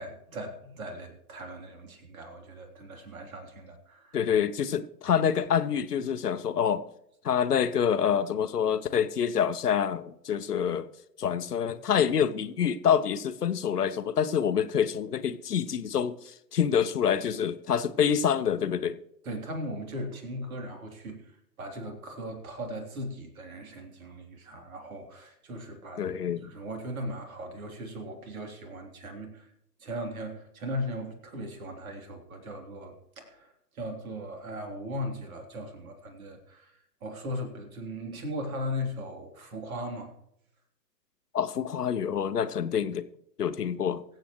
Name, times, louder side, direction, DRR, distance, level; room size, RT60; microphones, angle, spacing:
voice 1, 0.0-4.2 19.2-21.3 21.6-26.0 26.4-29.5 29.8-36.7 37.0-40.1, equal, 55° right, 3.4 m, -38 dB
voice 2, 4.1-6.8 7.2-10.9 11.2-19.0 26.0-26.5 41.3-43.1 43.4-44.0, left 8 dB, 65° left, 1.0 m, -27 dB
24.0 x 8.0 x 3.1 m
figure-of-eight pair, 120°, 50 cm